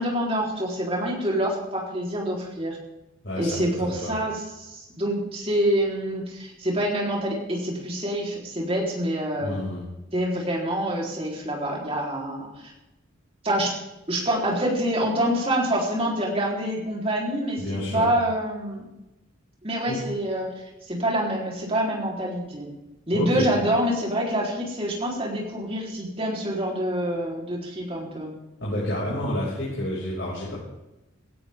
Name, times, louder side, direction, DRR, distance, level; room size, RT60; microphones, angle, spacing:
voice 1, 0.0-2.8 3.4-9.6 10.1-12.6 13.4-13.7 14.1-18.8 19.6-20.5 20.9-22.7 23.1-28.3, right 1 dB, 30° right, -2 dB, 3.9 m, -26 dB
voice 2, 3.2-4.2 9.4-9.8 17.6-18.1 19.9-20.0 23.1-23.5 28.6-30.5, left 1 dB, 60° left, -7 dB, 6.0 m, -29 dB
17.0 x 17.0 x 3.7 m, 0.97 s
head